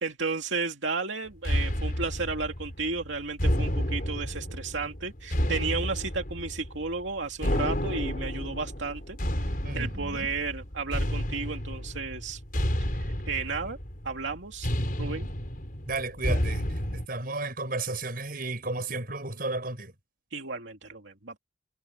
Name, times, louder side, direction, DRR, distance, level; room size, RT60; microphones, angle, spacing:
voice 1, 0.0-9.2 9.7-12.4 13.0-13.8 14.0-14.7 15.0-15.3 20.3-21.4, right 4 dB, 85° right, 2.4 m, -33 dB
sound 1, 1.4-17.1, equal, 50° left, 5.1 m, -31 dB
voice 2, 9.6-10.3 15.9-19.9, right 2 dB, 50° right, 6.3 m, -33 dB
head